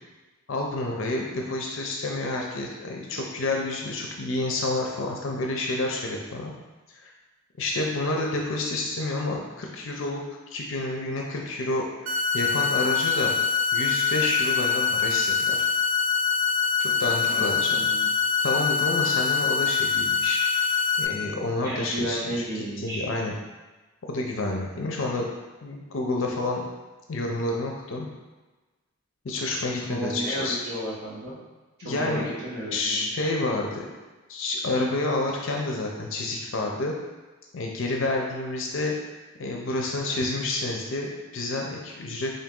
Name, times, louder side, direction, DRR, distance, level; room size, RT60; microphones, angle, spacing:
voice 1, 0.5-6.5 7.0-7.1 7.6-10.2 10.5-13.3 13.7-15.6 16.8-17.8 18.4-20.4 21.0-22.2 22.5-23.4 24.1-25.3 25.6-26.6 27.1-28.1 29.2-30.6 31.8-32.3 32.7-33.9 34.3-36.9 37.5-39.0 39.4-42.3, left 2 dB, 65° left, 0 dB, 0.5 m, -29 dB
sound 1, 12.1-21.1, left 6 dB, 80° right, 0.4 m, -24 dB
voice 2, 17.2-18.0 21.6-23.1 29.9-31.4 31.8-33.1, equal, 45° right, -7 dB, 1.1 m, -33 dB
3.9 x 2.6 x 3.6 m, 1.2 s
head